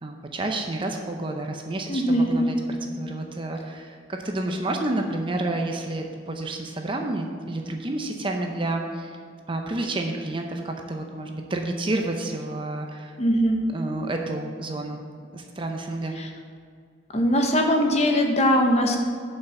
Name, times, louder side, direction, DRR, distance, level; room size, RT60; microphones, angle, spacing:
voice 1, 0.0-9.2 9.5-13.1 13.7-15.0 15.3-16.2, right 2 dB, 25° right, 3 dB, 0.6 m, -30 dB
voice 2, 1.9-2.5 13.2-13.6 16.2-16.3 17.1-19.0, equal, 30° left, 3 dB, 0.9 m, -21 dB
7.7 x 5.5 x 7.0 m, 2.2 s
head